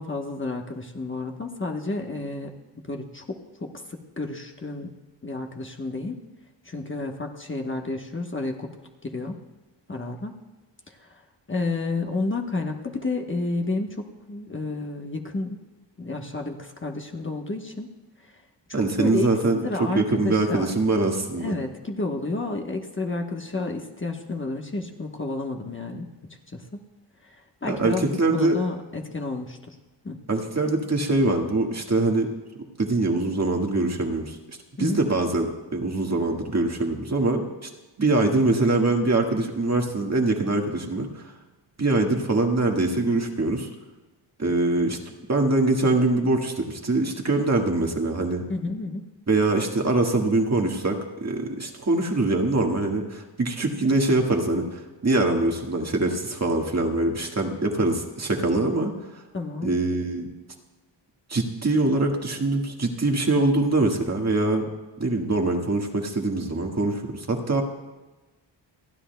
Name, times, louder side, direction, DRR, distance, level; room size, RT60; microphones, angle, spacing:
voice 1, 0.0-2.5 2.9-4.9 5.2-6.2 6.6-8.7 9.0-9.4 9.9-10.3 10.9-11.2 11.5-15.6 16.0-17.9 18.7-19.3 19.6-20.7 21.4-26.1 26.5-26.8 27.2-29.8 30.0-30.2 34.8-35.0 48.5-49.0 57.4-57.6 59.3-59.7, left 3 dB, 25° left, 2 dB, 1.2 m, -31 dB
voice 2, 18.7-19.6 19.9-21.5 27.7-28.6 30.3-32.3 32.8-34.4 34.8-37.7 38.0-41.3 41.8-43.7 44.4-45.0 45.3-48.4 49.3-58.9 59.6-60.3 61.3-64.7 65.0-67.6, right 2 dB, 35° right, 1 dB, 1.7 m, -23 dB
29.0 x 9.9 x 2.3 m, 1.1 s
cardioid pair, 75°, 46 cm